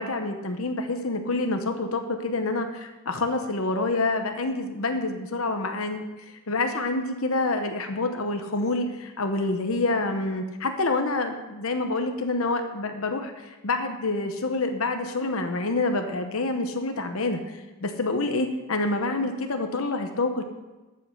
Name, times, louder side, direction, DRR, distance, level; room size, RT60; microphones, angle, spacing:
voice 1, 0.0-6.0 6.5-17.4 17.8-20.4, left 2 dB, 80° left, 6 dB, 1.0 m, -27 dB
13.0 x 5.6 x 6.5 m, 1.1 s
head